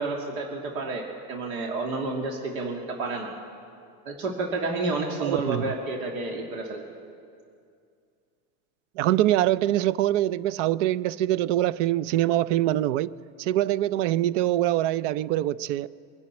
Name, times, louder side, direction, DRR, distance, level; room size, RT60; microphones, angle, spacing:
voice 1, 0.0-3.3 4.1-6.8, right 3 dB, 80° right, 1.9 m, -30 dB
voice 2, 5.2-5.6 9.0-13.1 13.4-15.9, right 13 dB, 60° right, 0.5 m, -24 dB
23.0 x 11.5 x 4.3 m
supercardioid pair, 155°, 42 cm